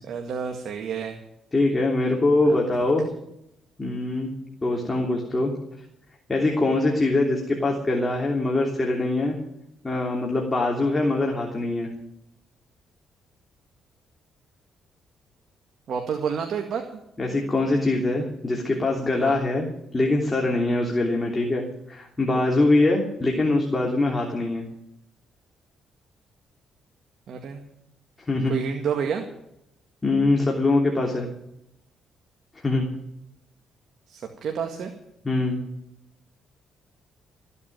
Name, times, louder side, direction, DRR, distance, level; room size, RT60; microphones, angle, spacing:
voice 1, 0.1-1.2 2.5-2.6 15.9-17.0 19.2-19.4 27.3-27.6 28.5-29.2 34.1-34.9, right 6 dB, 65° right, 4 dB, 1.9 m, -29 dB
voice 2, 1.5-3.0 3.8-4.3 4.6-5.5 6.3-9.4 9.8-11.9 17.2-24.6 28.3-28.6 30.0-31.3 32.6-32.9 35.2-35.6, left 2 dB, 20° left, -1 dB, 3.1 m, -23 dB
15.0 x 8.6 x 9.3 m, 0.80 s
cardioid pair, 90°, 0 cm